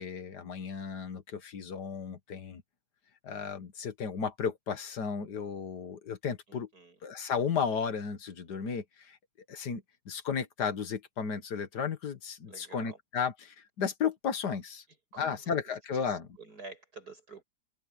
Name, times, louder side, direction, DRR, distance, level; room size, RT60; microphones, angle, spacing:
voice 1, 0.0-2.6 3.2-6.7 7.0-9.2 9.5-14.8 15.2-16.3, left 6 dB, 85° left, 2.1 m, -34 dB
voice 2, 6.5-7.0 12.5-13.0 15.1-15.5 15.9-17.4, right 3 dB, 75° right, 7.5 m, -49 dB
omnidirectional pair, 1.7 m